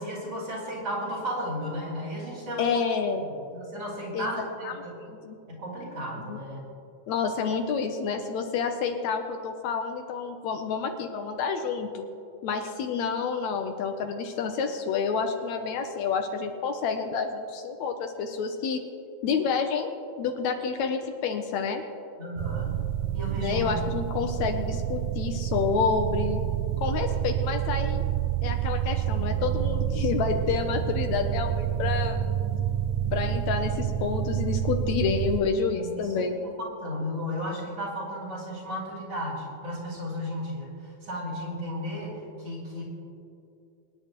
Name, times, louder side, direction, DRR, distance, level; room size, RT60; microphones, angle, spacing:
voice 1, 0.0-2.8 3.2-5.1 5.5-6.6 22.2-22.8 23.1-23.8 24.3-24.4 35.7-36.1 36.4-42.8, equal, 40° right, -5 dB, 4.1 m, -34 dB
voice 2, 2.6-3.2 4.1-4.3 4.6-4.7 5.1-5.4 6.3-6.4 7.1-12.0 12.4-18.8 19.2-19.9 20.2-21.8 23.4-26.4 26.8-28.0 28.4-32.2 33.1-36.4, left 5 dB, 75° left, 5 dB, 2.0 m, -29 dB
sound 1, 22.4-35.4, right 11 dB, 85° right, 2.1 m, -28 dB
24.5 x 10.0 x 3.0 m, 2.6 s
omnidirectional pair, 3.4 m